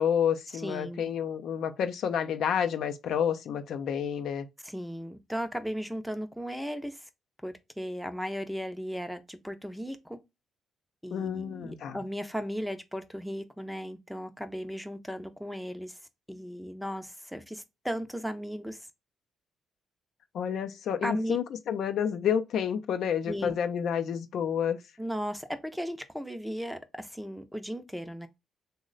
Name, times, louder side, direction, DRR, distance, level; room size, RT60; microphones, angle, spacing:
voice 1, 0.0-4.4 11.1-12.0 20.3-24.8, left 8 dB, 70° left, 0.4 m, -29 dB
voice 2, 0.5-1.1 4.6-7.1 7.4-10.2 11.0-16.0 16.3-18.9 21.0-21.4 23.3-23.5 25.0-28.3, equal, ahead, 0.5 m, -36 dB
3.1 x 2.1 x 3.8 m
cardioid pair, 90°, 0 cm